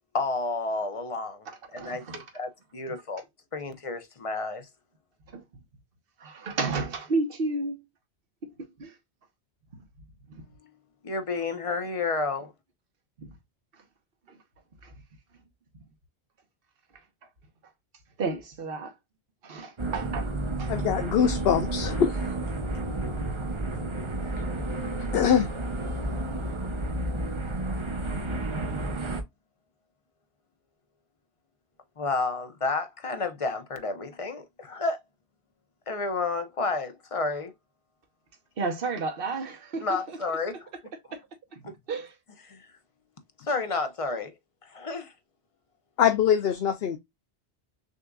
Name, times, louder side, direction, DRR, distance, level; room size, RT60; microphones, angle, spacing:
voice 1, 0.1-1.5 1.7-2.0 2.3-3.2 3.5-4.7 11.0-12.5 32.0-35.0 35.9-37.5 39.8-40.7 41.6-41.7 42.5-42.7 43.4-44.3 44.6-45.1, left 3 dB, 35° left, 0.7 m, -30 dB
voice 2, 1.5-2.3 5.3-5.4 6.2-7.8 8.4-9.0 10.3-10.4 13.2-13.4 13.7-13.8 14.3-14.4 14.8-14.9 18.2-19.0 19.4-20.3 20.6-20.7 38.6-40.2 40.5-40.6 41.1-41.2 41.5-42.2, right 3 dB, 60° right, 1.2 m, -32 dB
sound 1, 19.8-29.2, right 2 dB, 30° right, 0.7 m, -31 dB
voice 3, 20.7-22.2 25.1-25.5 46.0-47.0, left 8 dB, 70° left, 0.8 m, -23 dB
6.4 x 2.5 x 2.2 m
omnidirectional pair, 1.1 m